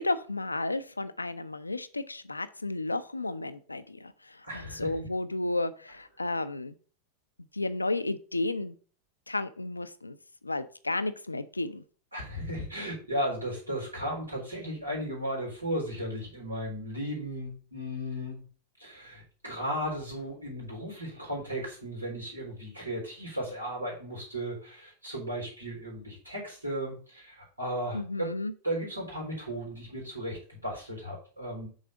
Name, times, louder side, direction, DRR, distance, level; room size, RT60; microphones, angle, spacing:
voice 1, 0.0-6.7 7.5-8.8 9.3-10.2 10.4-11.8 27.9-28.5, left 2 dB, 80° left, 12 dB, 0.5 m, -32 dB
voice 2, 4.4-4.9 12.1-18.4 18.8-28.3 28.6-31.7, equal, 80° right, -2 dB, 3.7 m, -35 dB
6.4 x 4.1 x 5.9 m, 0.41 s
figure-of-eight pair, 90°, 0 cm